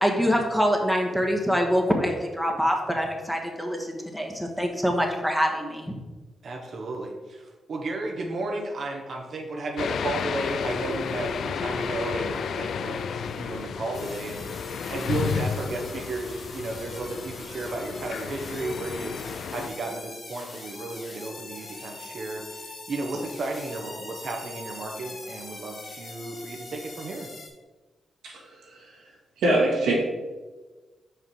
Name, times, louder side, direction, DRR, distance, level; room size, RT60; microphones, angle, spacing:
voice 1, 0.0-5.9, equal, ahead, 1 dB, 1.4 m, -25 dB
voice 2, 6.4-19.2 19.5-27.3, right 2 dB, 60° right, 1 dB, 1.0 m, -33 dB
sound 1, 9.8-19.7, left 6 dB, 70° left, 0.3 m, -32 dB
sound 2, 13.9-27.5, left 2 dB, 50° left, 1.6 m, -42 dB
voice 3, 29.4-29.9, right 2 dB, 85° right, -3 dB, 1.8 m, -22 dB
5.2 x 5.0 x 4.5 m, 1.2 s
supercardioid pair, 50°, 0 cm